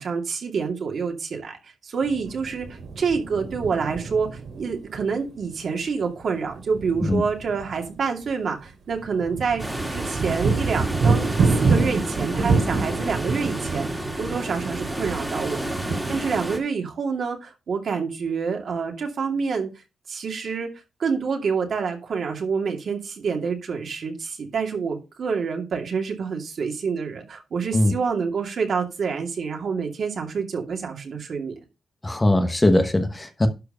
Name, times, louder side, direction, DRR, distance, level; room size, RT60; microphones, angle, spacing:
voice 1, 0.0-1.6 1.8-2.7 3.0-4.3 4.5-9.6 9.9-19.7 20.1-20.7 21.0-31.5, right 5 dB, 60° right, 2.5 m, -27 dB
sound 1, 2.0-5.1 5.4-5.7 6.2-8.0 8.2-8.3 8.6-16.3, right 4 dB, 80° right, 3.1 m, -27 dB
sound 2, 9.6-16.6, right 1 dB, 5° right, 2.2 m, -31 dB
voice 2, 32.0-33.5, left 1 dB, 15° left, 1.1 m, -20 dB
12.0 x 4.7 x 5.5 m
wide cardioid pair, 150°, 0 cm